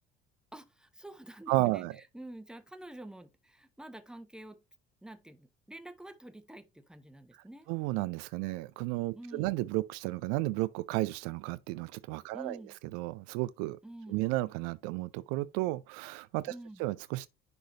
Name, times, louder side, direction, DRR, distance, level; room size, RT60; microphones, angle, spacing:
voice 1, 0.5-4.6 5.0-7.7 9.1-9.5 12.3-12.7 13.8-14.2 16.5-16.8, right 1 dB, ahead, 1.1 m, -48 dB
voice 2, 1.5-2.0 7.7-12.6 12.9-13.8 14.1-16.5 16.8-17.3, right 19 dB, 60° right, 0.5 m, -33 dB
10.5 x 3.8 x 2.8 m
figure-of-eight pair, 55°, 31 cm